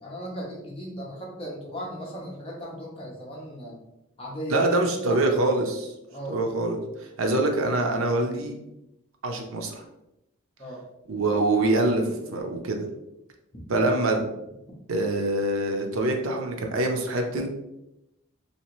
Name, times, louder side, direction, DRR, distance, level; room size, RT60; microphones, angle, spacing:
voice 1, 0.0-3.8 4.2-4.6 5.1-5.2 6.1-6.5 10.6-10.8, equal, 25° left, -3 dB, 0.8 m, -37 dB
voice 2, 4.5-5.9 6.3-8.6 9.2-9.8 11.1-12.9 13.7-14.3 14.9-17.5, right 2 dB, 75° right, 3 dB, 0.6 m, -25 dB
3.1 x 2.8 x 3.0 m, 0.90 s
head